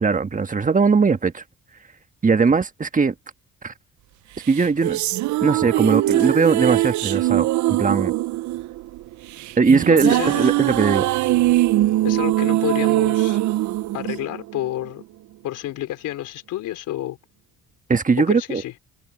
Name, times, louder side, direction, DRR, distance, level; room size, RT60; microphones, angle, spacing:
voice 1, 0.0-1.4 2.2-3.1 3.6-3.7 4.5-5.0 5.4-8.1 9.6-11.1 17.9-18.6, right 5 dB, 25° right, 1.5 m, -19 dB
sound 1, 4.4-14.9, right 16 dB, 70° right, 0.5 m, -21 dB
voice 2, 9.9-10.5 12.0-13.4 13.9-15.0 15.4-17.2 18.3-18.7, left 14 dB, 85° left, 3.6 m, -29 dB
cardioid pair, 90°, 30 cm